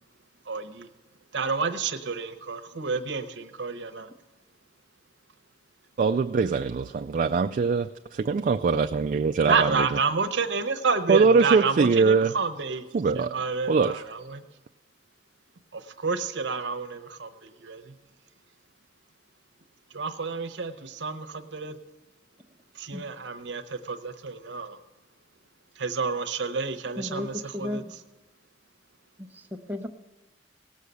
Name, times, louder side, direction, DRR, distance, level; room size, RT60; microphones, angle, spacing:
voice 1, 0.5-0.9 1.3-4.1 9.5-12.8 13.2-14.4 15.7-17.3 17.6-17.8 19.9-21.7 22.8-24.8 25.8-27.8, right 4 dB, 75° right, 8 dB, 0.9 m, -29 dB
voice 2, 6.0-10.0 11.1-12.3 12.9-13.3 13.7-14.0, right 4 dB, 45° right, 6 dB, 0.3 m, -22 dB
voice 3, 27.0-27.3 27.5-27.9 29.5-29.9, left 1 dB, 10° right, 3 dB, 0.7 m, -33 dB
17.5 x 6.4 x 6.8 m, 1.2 s
head